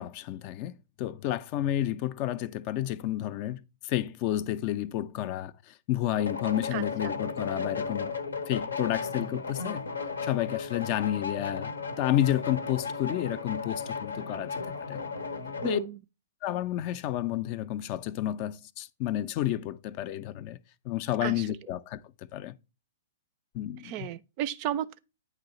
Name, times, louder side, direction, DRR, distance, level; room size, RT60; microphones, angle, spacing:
voice 1, 0.0-8.1 8.5-9.9 10.2-15.0 15.6-15.8 16.4-20.6 20.8-22.6 23.5-24.1, left 13 dB, 40° left, 0.4 m, -31 dB
sound 1, 6.2-15.8, left 4 dB, 80° left, 0.7 m, -35 dB
voice 2, 6.7-7.1 15.6-16.0 21.2-21.5 23.8-25.0, right 11 dB, 40° right, 0.4 m, -34 dB
8.9 x 3.0 x 4.0 m
figure-of-eight pair, 110°, 0 cm